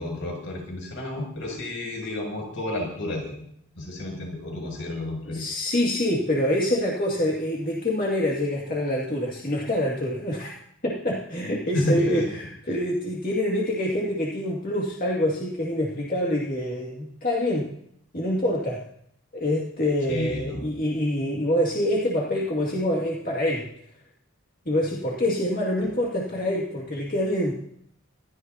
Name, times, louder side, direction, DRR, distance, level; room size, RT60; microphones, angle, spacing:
voice 1, 0.0-3.3 3.7-5.4 11.7-12.3 20.1-20.6 25.8-25.9, left 1 dB, 65° left, 0 dB, 7.2 m, -30 dB
voice 2, 5.3-10.6 10.8-17.7 18.1-18.8 19.3-23.7 24.7-27.5, left 1 dB, 45° left, -3 dB, 2.3 m, -26 dB
27.5 x 13.5 x 2.9 m, 0.69 s
head